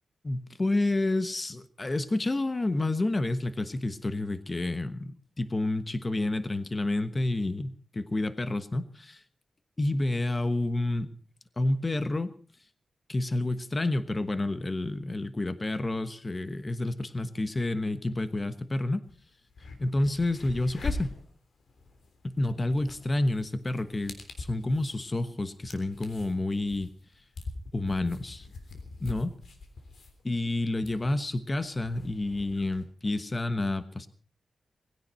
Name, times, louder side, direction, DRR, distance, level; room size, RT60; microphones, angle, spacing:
voice 1, 0.2-9.2 9.8-11.1 11.6-12.3 13.1-19.0 19.8-21.2 22.2-26.9 27.7-28.5 29.0-29.3 30.2-34.1, left 2 dB, 20° left, 12 dB, 1.2 m, -29 dB
sound 1, 19.0-19.1 19.5-32.8, left 3 dB, 65° left, 3.5 m, -42 dB
19.5 x 16.5 x 4.3 m, 0.42 s
wide cardioid pair, 160°, 0 cm